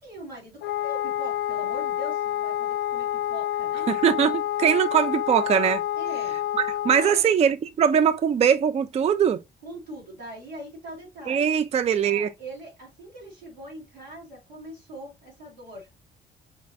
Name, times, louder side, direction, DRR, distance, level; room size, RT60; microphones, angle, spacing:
voice 1, 0.0-3.9 6.0-6.4 7.0-7.3 9.6-11.5 12.0-15.9, right 1 dB, 90° right, 2.0 m, -42 dB
Wind instrument woodwind instrument, 0.6-7.2, left 12 dB, 55° left, 0.5 m, -28 dB
voice 2, 3.9-5.8 6.6-9.4 11.3-12.3, right 8 dB, 30° right, 0.4 m, -21 dB
5.1 x 3.0 x 2.6 m
figure-of-eight pair, 40°, 21 cm